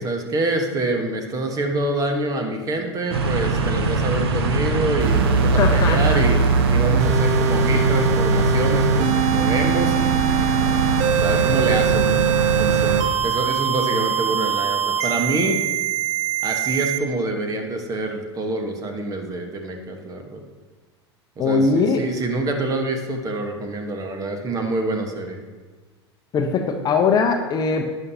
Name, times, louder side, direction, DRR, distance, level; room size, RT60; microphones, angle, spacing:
voice 1, 0.0-10.2 11.0-12.3 12.6-15.6 16.4-20.4 21.4-25.4, right 2 dB, 25° right, 4 dB, 1.3 m, -26 dB
sound 1, 3.1-13.0, right 3 dB, 60° right, 1.1 m, -22 dB
sound 2, 5.0-17.0, right 6 dB, 45° right, 0.8 m, -22 dB
voice 2, 5.6-6.2 21.4-22.0 26.3-27.9, left 4 dB, 30° left, 4 dB, 0.8 m, -20 dB
12.0 x 10.0 x 2.8 m, 1.3 s
figure-of-eight pair, 85°, 14 cm